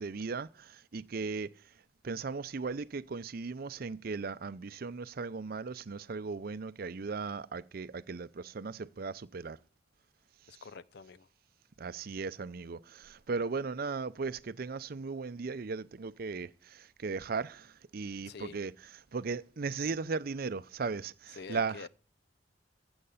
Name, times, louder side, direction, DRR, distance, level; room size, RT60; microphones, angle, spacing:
voice 1, 0.0-1.5 2.0-9.6 10.5-10.7 11.8-21.9, right 4 dB, 55° right, 0.5 m, -37 dB
voice 2, 10.5-11.3 18.3-18.6 21.3-21.9, left 4 dB, 65° left, 0.6 m, -46 dB
15.0 x 7.9 x 5.6 m
head